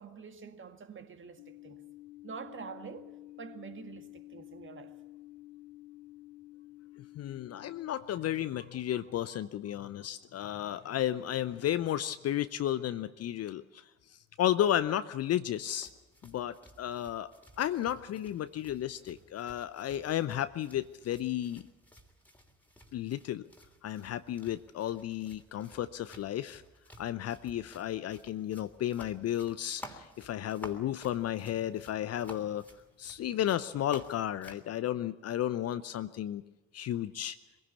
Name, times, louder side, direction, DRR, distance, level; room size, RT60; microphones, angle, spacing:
voice 1, 0.0-1.8 2.2-3.1 3.4-4.9 7.6-7.7 8.6-8.7 9.3-9.4 9.8-10.1, right 6 dB, 35° right, 2.0 m, -47 dB
sound 1, 1.4-8.1, left 17 dB, 65° left, 0.9 m, -51 dB
voice 2, 7.2-13.8 14.4-15.9 16.2-17.3 17.6-21.6 22.9-23.4 23.8-26.6 27.0-32.7 33.0-36.4 36.7-37.4, left 11 dB, 45° left, 0.7 m, -33 dB
sound 2, 15.5-34.7, equal, 5° left, 3.2 m, -54 dB
22.5 x 16.0 x 8.3 m
figure-of-eight pair, 55°, 36 cm